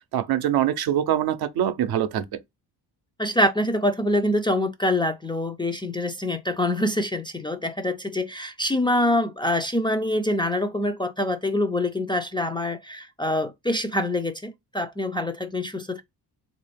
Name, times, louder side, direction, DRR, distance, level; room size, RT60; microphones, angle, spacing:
voice 1, 0.1-2.2, right 11 dB, 65° right, 0.6 m, -23 dB
voice 2, 3.2-16.0, left 1 dB, 15° left, 0.3 m, -25 dB
3.7 x 2.5 x 3.3 m
cardioid pair, 130°, 40 cm